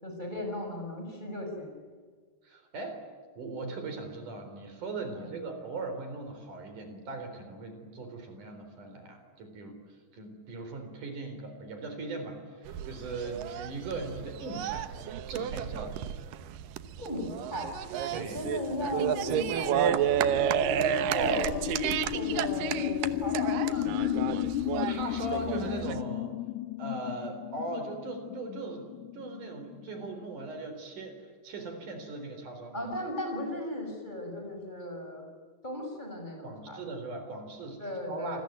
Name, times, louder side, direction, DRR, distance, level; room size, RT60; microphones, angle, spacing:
voice 1, 0.0-1.8 5.1-5.4 17.0-17.7 18.0-21.6 22.1-24.2 32.7-35.3 35.6-36.8 37.8-38.4, left 1 dB, 10° left, 3 dB, 6.1 m, -37 dB
voice 2, 2.4-3.0 3.4-9.8 10.1-16.0 18.1-18.4 24.8-26.3 26.8-28.9 29.1-32.9 36.4-37.8 38.1-38.4, right 2 dB, 65° right, 6 dB, 5.5 m, -39 dB
sound 1, 12.7-26.0, right 10 dB, 90° right, 2.7 m, -31 dB
sound 2, 18.3-30.4, left 14 dB, 70° left, 2.2 m, -34 dB
28.0 x 21.5 x 9.5 m, 1.5 s
omnidirectional pair, 3.9 m